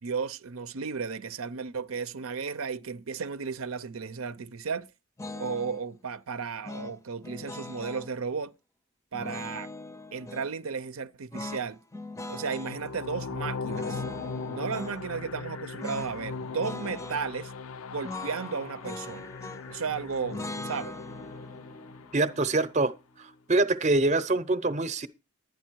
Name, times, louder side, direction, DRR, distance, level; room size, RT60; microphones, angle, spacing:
voice 1, 0.0-4.9 5.3-8.5 9.1-9.7 10.1-11.8 12.3-14.0 14.5-17.5 17.9-19.3 19.7-20.9, right 5 dB, 75° right, 0.7 m, -34 dB
sound 1, 5.2-5.8 6.6-8.1 9.1-10.5 11.3-12.8 13.6-15.0 15.8-16.1 16.4-17.2 18.0-19.8 20.3-23.4, left 2 dB, 15° left, 0.6 m, -41 dB
sound 2, 12.5-22.6, left 4 dB, 80° left, 0.6 m, -39 dB
voice 2, 22.1-22.9 23.5-25.1, right 2 dB, 35° right, 0.8 m, -24 dB
11.5 x 9.4 x 4.6 m
head